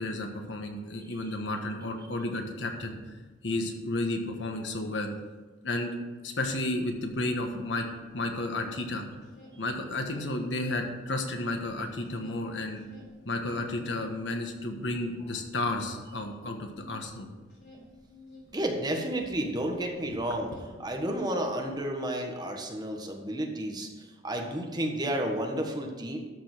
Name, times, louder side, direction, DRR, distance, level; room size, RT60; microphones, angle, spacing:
voice 1, 0.0-3.0 3.4-5.1 5.6-5.9 6.2-7.9 8.1-9.0 9.6-12.8 13.2-17.3, left 2 dB, 85° left, 4 dB, 1.5 m, -32 dB
sound 1, 6.9-8.8 9.1-11.0 11.3-20.0 20.3-21.8, left 2 dB, 60° left, 3.4 m, -53 dB
voice 2, 18.5-20.5 20.8-26.2, right 1 dB, 25° right, 2 dB, 1.4 m, -31 dB
12.5 x 5.2 x 6.1 m, 1.3 s
head